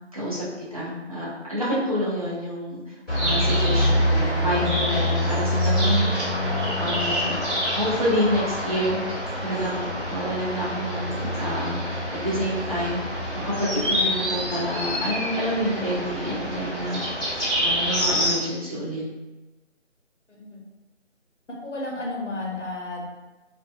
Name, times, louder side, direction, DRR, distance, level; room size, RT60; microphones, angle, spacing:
voice 1, 0.1-0.5 0.7-6.1 6.5-7.4 7.8-9.0 9.4-19.0, equal, 30° right, -8 dB, 0.5 m, -28 dB
sound 1, 3.1-18.3, equal, 15° left, 1.0 m, -26 dB
voice 2, 21.5-23.2, left 2 dB, 70° left, -3 dB, 0.9 m, -33 dB
2.6 x 2.1 x 2.4 m, 1.1 s
figure-of-eight pair, 165°, 37 cm